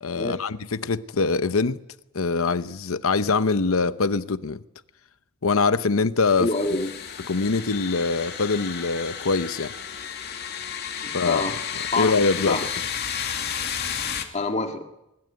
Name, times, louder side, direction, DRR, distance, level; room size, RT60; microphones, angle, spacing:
voice 1, 0.0-1.8 2.1-4.6 5.4-6.5 7.3-9.7 11.1-11.6 12.0-12.6, left 4 dB, 90° left, 0.9 m, -23 dB
sound 1, 6.2-14.2, left 7 dB, 50° left, 2.5 m, -32 dB
voice 2, 6.4-6.9 11.0-11.5 11.9-12.1 12.4-12.7 14.3-14.8, left 2 dB, 35° left, 2.3 m, -26 dB
20.5 x 20.5 x 9.5 m
head